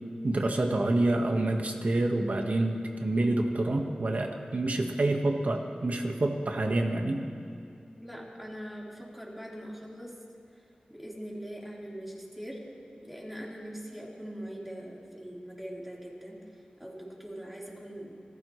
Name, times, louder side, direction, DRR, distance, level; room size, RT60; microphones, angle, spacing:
voice 1, 0.2-7.2, right 2 dB, 65° right, 3 dB, 1.5 m, -27 dB
voice 2, 8.0-10.2 10.9-12.6 13.0-18.2, equal, 5° right, -5 dB, 4.0 m, -42 dB
27.0 x 15.0 x 3.2 m, 2.6 s
wide cardioid pair, 80°, 3 cm